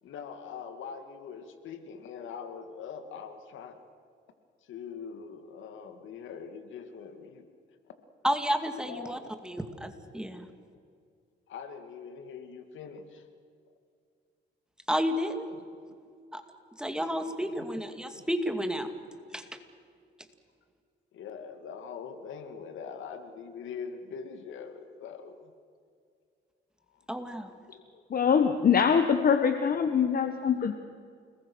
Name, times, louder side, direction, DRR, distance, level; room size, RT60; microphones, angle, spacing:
voice 1, 0.0-3.8 4.6-7.5 7.9-8.0 8.8-9.4 11.5-13.3 15.6-16.0 17.0-17.7 18.2-18.3 21.1-25.5 26.9-27.1 27.7-28.0, left 6 dB, 75° left, 8 dB, 2.5 m, -43 dB
voice 2, 8.2-9.2 9.4-10.5 14.9-15.5 16.3-16.4 16.8-18.9 19.3-19.4 27.1-27.5, equal, 5° right, 7 dB, 2.5 m, -31 dB
voice 3, 28.1-30.7, left 7 dB, 45° left, 8 dB, 1.4 m, -23 dB
29.5 x 20.5 x 6.4 m, 2.3 s
cardioid pair, 90°, 20 cm